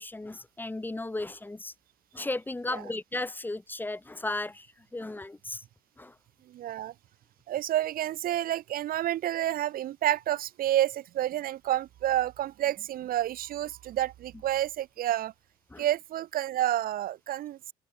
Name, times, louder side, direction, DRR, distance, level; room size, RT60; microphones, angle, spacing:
voice 1, 0.0-1.7 2.1-4.7 4.9-5.6 6.0-6.1 15.7-15.8, left 2 dB, 10° left, 1.2 m, -35 dB
voice 2, 6.5-6.9 7.5-15.3 15.8-17.7, right 13 dB, 60° right, 0.7 m, -29 dB
open air
cardioid pair, 110°, 17 cm